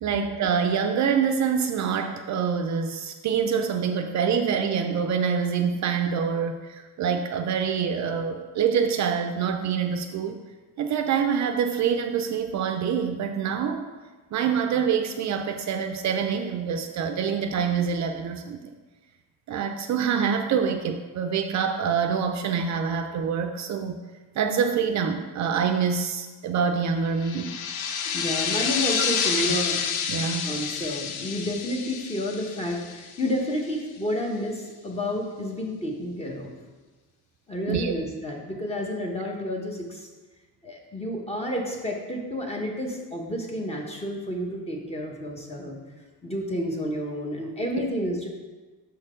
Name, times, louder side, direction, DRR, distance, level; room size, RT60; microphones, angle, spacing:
voice 1, 0.0-10.4 10.8-13.9 14.3-18.7 19.5-24.0 24.4-27.5 30.1-30.6 37.7-37.9, right 6 dB, 50° right, 6 dB, 0.5 m, -26 dB
sound 1, 27.2-33.5, left 7 dB, 75° left, 0.7 m, -29 dB
voice 2, 28.1-29.8 30.4-36.5 37.5-40.1 40.6-45.8 46.2-48.3, equal, 15° left, 0 dB, 1.0 m, -30 dB
6.6 x 4.4 x 5.0 m, 1.3 s
cardioid pair, 140°, 37 cm